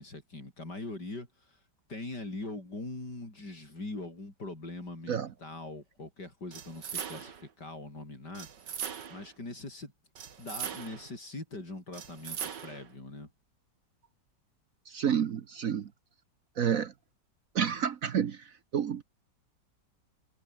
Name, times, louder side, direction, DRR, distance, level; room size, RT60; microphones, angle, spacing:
voice 1, 0.0-1.6 1.9-8.5 9.1-9.9 10.4-13.3, left 2 dB, 65° left, 7.5 m, -42 dB
sound 1, 6.5-7.5 8.3-9.3 10.2-11.1 11.9-12.9, right 7 dB, 75° right, 2.4 m, -40 dB
voice 2, 14.9-15.9 16.6-16.9 17.5-19.0, right 8 dB, 55° right, 1.2 m, -30 dB
omnidirectional pair, 1.9 m